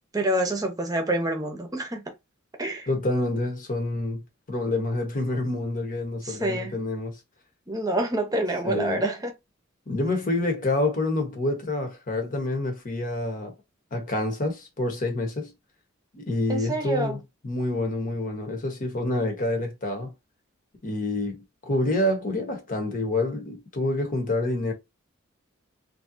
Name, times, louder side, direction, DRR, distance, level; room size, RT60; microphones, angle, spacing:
voice 1, 0.1-2.1 2.6-2.9 6.2-6.8 7.7-9.3 16.5-17.2, right 1 dB, 20° right, 0.9 m, -27 dB
voice 2, 2.9-4.2 4.5-7.2 8.6-9.0 9.9-13.5 13.9-15.5 16.1-17.2 17.4-20.1 20.8-24.7, left 2 dB, 40° left, 1.1 m, -27 dB
3.3 x 2.8 x 2.6 m
head